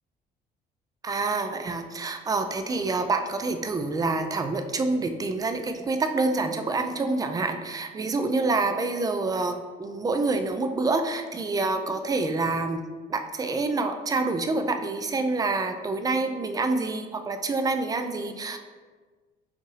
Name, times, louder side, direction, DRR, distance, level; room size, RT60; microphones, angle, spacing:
voice 1, 1.0-12.8 13.1-18.6, right 3 dB, 20° right, 7 dB, 0.4 m, -27 dB
5.4 x 2.5 x 3.2 m, 1.4 s
cardioid pair, 110°, 17 cm